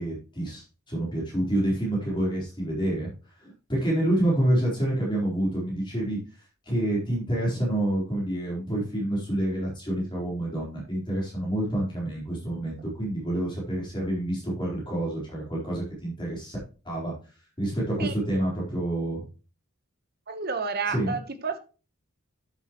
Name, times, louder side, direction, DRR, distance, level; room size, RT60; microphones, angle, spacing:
voice 1, 0.0-3.1 3.4-6.2 6.7-16.6 16.8-17.1 17.6-19.2 20.9-21.1, right 1 dB, 20° left, 4.2 m, -28 dB
voice 2, 20.3-21.6, right 4 dB, 45° right, 1.1 m, -30 dB
11.0 x 8.3 x 3.1 m
head